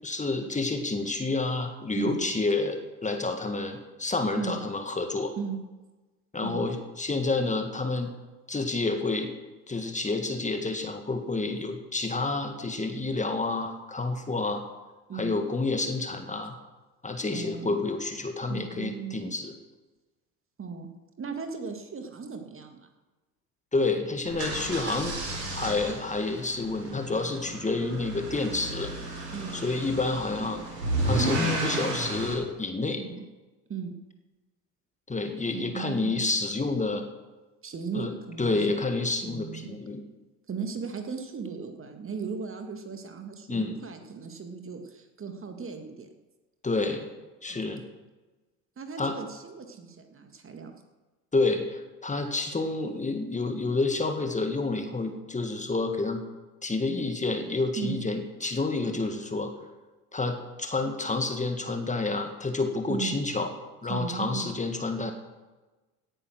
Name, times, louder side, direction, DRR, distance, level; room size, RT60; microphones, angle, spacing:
voice 1, 0.0-5.3 6.3-8.1 8.5-9.3 9.7-14.6 15.1-16.5 17.0-19.5 23.7-25.2 25.5-28.9 29.5-30.6 31.1-33.0 35.1-37.1 37.9-40.0 43.5-43.8 46.6-47.1 47.4-47.8 49.0-49.2 51.3-56.3 56.6-59.5 60.1-63.5 63.8-65.1, left 3 dB, 15° left, 5 dB, 1.8 m, -29 dB
voice 2, 17.3-17.8 18.5-19.2 20.6-20.9 21.2-22.9 29.3-29.6 33.0-33.3 33.7-34.0 35.5-36.2 37.6-38.8 39.2-39.7 40.5-46.1 47.5-47.7 48.8-50.8 57.8-58.0 62.9-63.2 63.9-64.5, right 6 dB, 25° right, 6 dB, 1.9 m, -36 dB
sound 1, 24.2-32.3, right 1 dB, 80° right, 3.8 m, -32 dB
17.5 x 10.0 x 6.3 m, 1.2 s
figure-of-eight pair, 65°, 47 cm